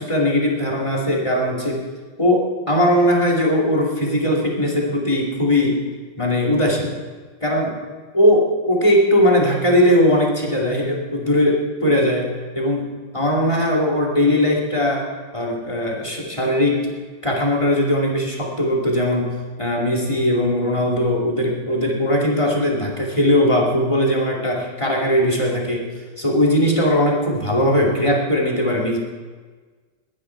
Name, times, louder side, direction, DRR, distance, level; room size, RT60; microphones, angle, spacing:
voice 1, 0.0-1.8 2.2-5.9 6.2-6.9 7.4-7.7 8.1-15.1 15.3-16.9 17.2-25.9 26.2-29.0, left 1 dB, 15° left, -1 dB, 2.5 m, -19 dB
21.5 x 9.9 x 4.6 m, 1.4 s
omnidirectional pair, 2.1 m